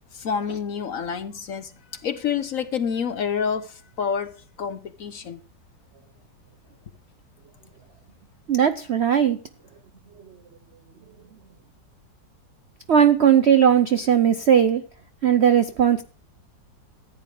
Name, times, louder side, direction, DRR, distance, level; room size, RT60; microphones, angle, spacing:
voice 1, 0.1-4.3 4.6-5.4, left 7 dB, 60° left, 1.0 m, -28 dB
voice 2, 8.5-9.4 12.9-14.8 15.2-16.0, right 8 dB, 65° right, 0.6 m, -18 dB
14.5 x 9.5 x 4.9 m
omnidirectional pair, 2.0 m